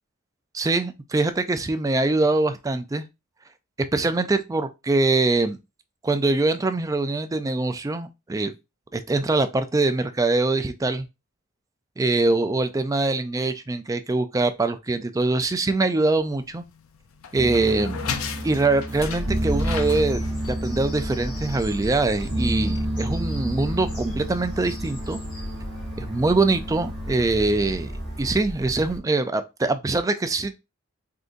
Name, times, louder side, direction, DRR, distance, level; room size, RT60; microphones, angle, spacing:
voice 1, 0.5-3.1 3.9-5.6 6.0-8.5 8.9-11.1 12.0-16.6 17.3-18.1 18.4-20.2 20.5-25.2 26.0-27.9 28.2-30.6, right 3 dB, 15° right, 0.3 m, -23 dB
sound 1, 16.1-21.5, left 6 dB, 80° left, 0.5 m, -36 dB
sound 2, 17.4-28.3, equal, 75° right, 1.0 m, -31 dB
Bird vocalization bird call bird song, 19.0-29.0, equal, 25° left, 2.4 m, -36 dB
3.8 x 3.7 x 2.5 m
head